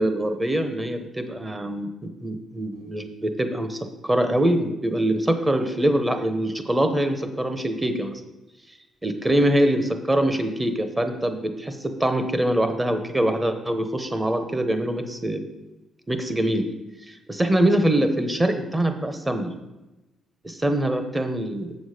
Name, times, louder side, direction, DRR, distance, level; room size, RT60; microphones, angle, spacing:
voice 1, 0.0-1.9 2.2-8.2 9.0-15.4 16.1-16.7 17.1-19.5 20.4-21.8, right 1 dB, 15° right, 7 dB, 1.0 m, -24 dB
7.5 x 6.3 x 5.0 m, 1.0 s
cardioid pair, 90°, 0 cm